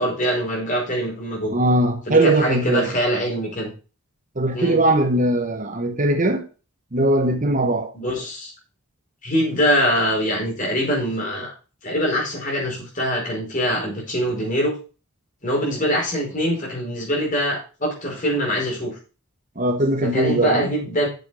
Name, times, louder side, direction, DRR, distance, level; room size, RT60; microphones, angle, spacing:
voice 1, 0.0-1.5 2.1-3.7 4.5-4.8 7.9-8.5 9.2-11.5 11.8-14.7 15.4-18.9 20.0-21.1, equal, 35° left, 4.8 m, -23 dB
voice 2, 1.5-2.9 4.4-6.4 6.9-7.9 19.6-20.7, right 1 dB, 35° right, 1.0 m, -20 dB
8.0 x 7.1 x 5.0 m
head